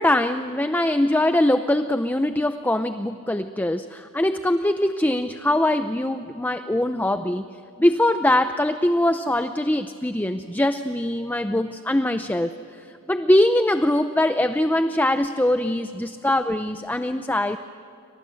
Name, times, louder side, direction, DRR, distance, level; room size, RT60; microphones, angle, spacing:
voice 1, 0.0-7.4 7.8-12.6 13.1-17.6, left 1 dB, 10° left, 9 dB, 0.6 m, -22 dB
28.5 x 26.0 x 7.7 m, 2.7 s
head